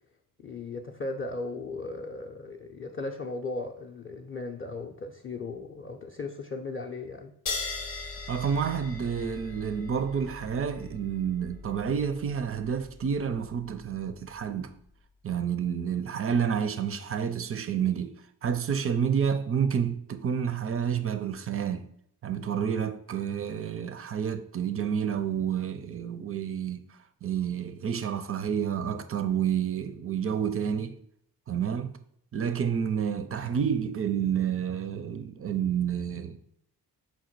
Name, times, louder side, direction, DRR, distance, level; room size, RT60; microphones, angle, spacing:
voice 1, 0.4-7.3, left 3 dB, 30° left, 0.5 m, -37 dB
sound 1, 7.5-14.4, left 4 dB, 85° left, 0.7 m, -40 dB
voice 2, 8.3-14.7 15.2-18.1 18.4-21.9 22.2-31.0 31.5-32.0 32.3-36.4, right 7 dB, 35° right, 0.4 m, -29 dB
4.1 x 2.2 x 4.5 m
hypercardioid pair, 40°, 44 cm